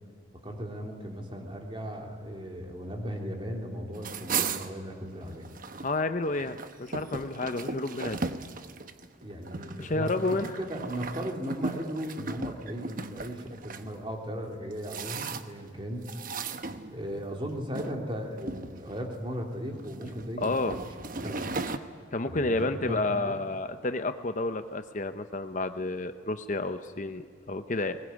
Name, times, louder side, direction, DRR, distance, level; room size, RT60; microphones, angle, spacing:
voice 1, 0.4-5.5 9.2-16.1 16.9-20.9 21.2-21.5 22.3-22.6 22.9-23.4, equal, 25° right, 2 dB, 3.2 m, -37 dB
sound 1, 3.9-5.9 6.2-13.8 14.5-15.7 16.0-17.3 17.7-18.0 18.4-19.1 19.8-21.8, right 4 dB, 45° right, 1.0 m, -36 dB
voice 2, 5.8-8.2 9.8-10.5 20.4-20.8 22.1-28.0, left 2 dB, 40° left, 9 dB, 0.8 m, -30 dB
21.0 x 20.0 x 9.7 m, 2.1 s
head